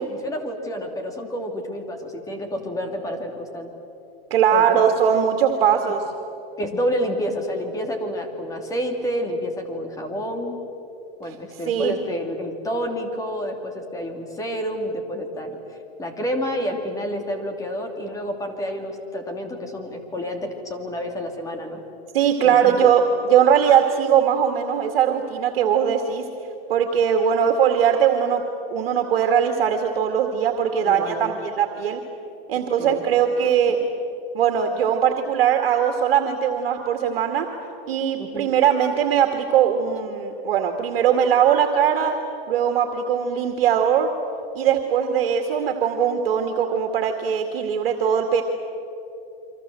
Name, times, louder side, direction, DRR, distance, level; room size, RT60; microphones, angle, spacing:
voice 1, 0.0-3.7 4.5-4.8 6.6-10.6 11.2-21.8 22.4-22.9 30.8-31.4 32.8-33.1 33.4-33.5 38.2-38.5, equal, 10° left, 4 dB, 2.8 m, -29 dB
voice 2, 4.3-6.0 11.7-12.0 22.1-26.2 26.7-28.4 28.7-32.0 32.5-33.8 34.3-37.5 37.9-42.2 42.5-44.1 44.6-48.4, right 8 dB, 75° right, 4 dB, 2.3 m, -20 dB
29.0 x 24.5 x 7.8 m, 2.9 s
supercardioid pair, 155°, 29 cm